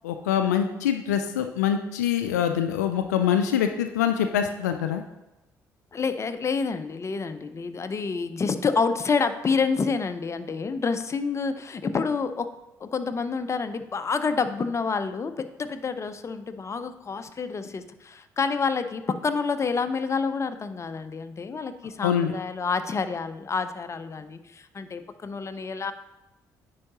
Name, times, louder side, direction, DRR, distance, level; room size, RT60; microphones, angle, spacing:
voice 1, 0.0-5.0 22.0-22.3, left 9 dB, 85° left, 7 dB, 0.4 m, -24 dB
voice 2, 5.9-12.5 12.8-25.9, left 5 dB, 35° left, 10 dB, 0.6 m, -28 dB
9.5 x 4.7 x 2.9 m, 0.97 s
hypercardioid pair, 45°, 9 cm